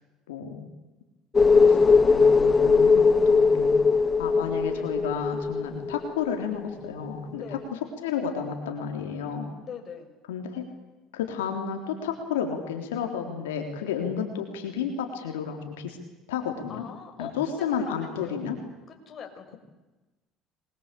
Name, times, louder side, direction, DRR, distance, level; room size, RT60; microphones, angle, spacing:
voice 1, 0.3-0.7 1.4-3.8 4.2-9.5 10.3-10.6 11.1-16.0 16.3-16.8 17.2-18.6, left 7 dB, 90° left, 3 dB, 3.7 m, -32 dB
sound 1, 1.3-6.6 6.8-6.9, left 4 dB, 25° left, 1.2 m, -20 dB
voice 2, 7.3-7.7 9.6-10.1 16.7-18.4 18.9-19.6, left 7 dB, 45° left, 4 dB, 6.5 m, -42 dB
26.0 x 22.5 x 8.5 m, 1.1 s
hypercardioid pair, 75°, 0 cm